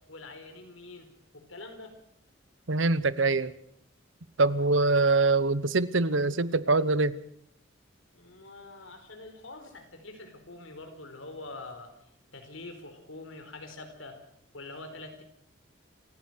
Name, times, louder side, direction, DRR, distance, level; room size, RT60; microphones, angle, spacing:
voice 1, 0.1-2.0 8.1-11.9 12.3-14.2 14.5-15.2, left 2 dB, 90° left, 6 dB, 4.6 m, -45 dB
voice 2, 2.7-3.5 4.4-7.2, right 3 dB, 75° right, 17 dB, 1.0 m, -24 dB
28.0 x 15.5 x 6.4 m, 0.71 s
head